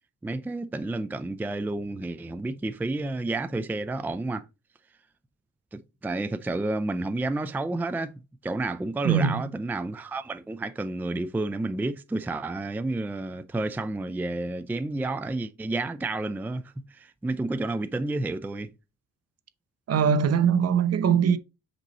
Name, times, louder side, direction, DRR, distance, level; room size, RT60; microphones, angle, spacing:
voice 1, 0.2-4.5 5.7-8.1 8.4-18.7, right 2 dB, 5° right, 0.4 m, -30 dB
voice 2, 9.0-9.5 19.9-21.4, right 7 dB, 55° right, 0.8 m, -22 dB
8.0 x 3.0 x 4.1 m
cardioid pair, 90°, 30 cm